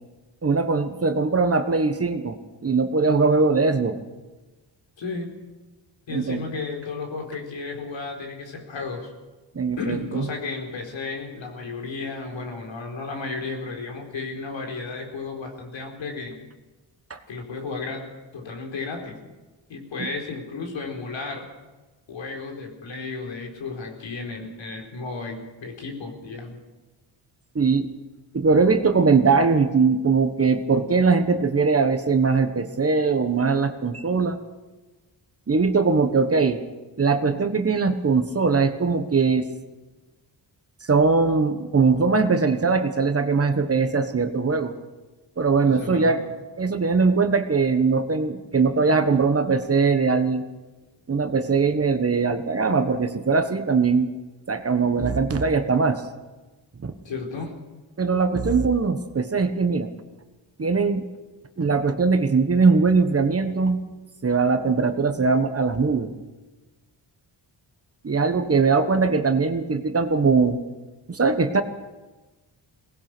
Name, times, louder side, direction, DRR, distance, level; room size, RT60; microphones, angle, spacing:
voice 1, 0.4-4.0 6.1-6.4 9.5-10.3 17.1-17.2 20.0-20.1 27.5-27.9 28.3-34.4 35.5-36.6 37.0-39.5 40.9-44.7 45.4-46.2 46.6-50.4 51.1-54.1 54.5-56.0 56.8-56.9 58.0-59.9 60.6-61.1 61.6-63.9 64.2-66.1 68.0-70.6 71.1-71.6, right 4 dB, 30° right, 8 dB, 1.3 m, -21 dB
voice 2, 5.0-5.3 6.1-9.1 9.8-16.4 17.3-18.0 18.3-19.2 19.7-21.5 22.1-26.6 45.6-46.2 54.7-54.9 57.0-57.6, left 4 dB, 75° left, 3 dB, 4.3 m, -33 dB
22.5 x 19.0 x 6.1 m, 1.2 s
wide cardioid pair, 145°, 46 cm